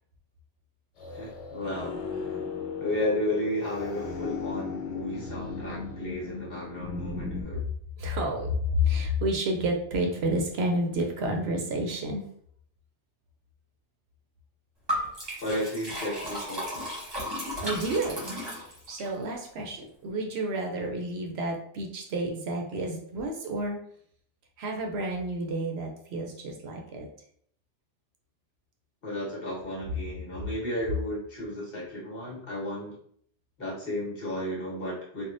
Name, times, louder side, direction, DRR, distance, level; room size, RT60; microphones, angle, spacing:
sound 1, 1.0-7.4, left 5 dB, 75° left, 1.0 m, -36 dB
voice 1, 1.1-2.4 2.8-7.6 15.4-16.9 29.0-32.9 33.6-35.3, left 1 dB, 55° left, -6 dB, 1.4 m, -33 dB
voice 2, 8.0-12.2 17.6-18.2 18.6-23.8 24.6-27.1, equal, 70° right, 2 dB, 0.8 m, -30 dB
Liquid, 14.9-19.1, equal, 25° right, 0.9 m, -34 dB
3.4 x 2.2 x 2.5 m, 0.64 s
omnidirectional pair, 1.2 m